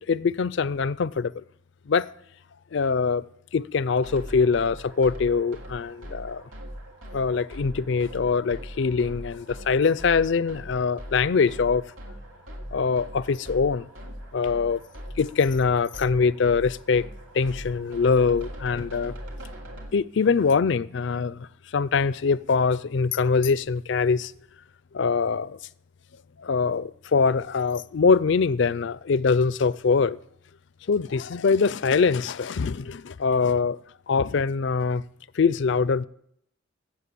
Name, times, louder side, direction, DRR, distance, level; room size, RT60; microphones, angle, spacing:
voice 1, 0.0-1.4 1.9-2.1 2.7-3.2 3.5-6.4 7.1-11.8 12.7-13.9 14.3-14.8 15.2-17.0 17.3-19.1 19.9-21.5 21.7-24.3 24.9-25.6 26.4-30.2 30.9-33.8 34.1-35.0 35.3-36.0, left 5 dB, 60° left, 0.4 m, -23 dB
sound 1, 4.0-19.9, equal, 80° right, 2.8 m, -41 dB
15.5 x 7.5 x 8.4 m
head